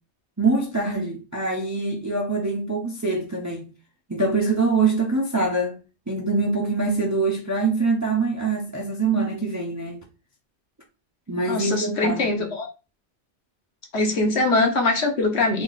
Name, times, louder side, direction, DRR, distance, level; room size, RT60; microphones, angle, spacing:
voice 1, 0.4-3.7 4.1-5.8 6.1-10.0 11.3-12.5, right 3 dB, 20° right, 0.6 m, -24 dB
voice 2, 11.5-12.7 13.9-15.6, left 2 dB, 65° left, 1.3 m, -22 dB
3.5 x 2.8 x 4.0 m
omnidirectional pair, 1.2 m